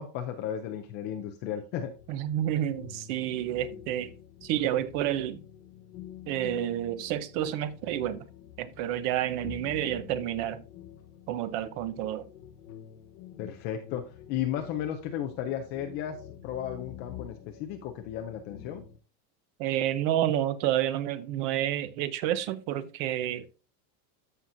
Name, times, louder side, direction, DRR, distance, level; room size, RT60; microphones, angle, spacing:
voice 1, 0.0-1.9 13.4-18.8, left 10 dB, 25° left, 0.3 m, -34 dB
sound 1, 1.9-19.0, left 10 dB, 80° left, 1.6 m, -47 dB
voice 2, 2.1-4.1 4.4-5.4 6.3-8.3 8.6-10.6 11.3-12.3 19.6-23.5, right 12 dB, 45° right, 0.8 m, -29 dB
13.5 x 5.8 x 2.5 m
supercardioid pair, 160°, 48 cm